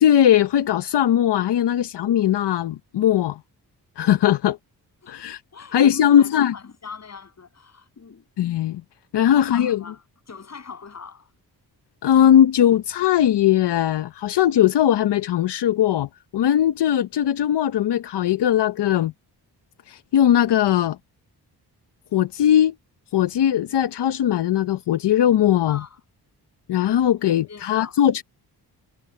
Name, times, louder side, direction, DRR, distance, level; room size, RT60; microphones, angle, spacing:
voice 1, 0.0-3.4 4.0-4.6 5.1-5.4 5.7-6.5 8.4-8.8 9.1-9.8 12.0-19.1 19.9-21.0 22.1-22.7 23.1-25.8 26.7-28.2, left 10 dB, 85° left, 0.8 m, -19 dB
voice 2, 5.5-8.3 9.2-11.3 25.7-26.0 27.2-28.0, left 5 dB, 40° left, 7.5 m, -41 dB
wide cardioid pair, 155°, 40 cm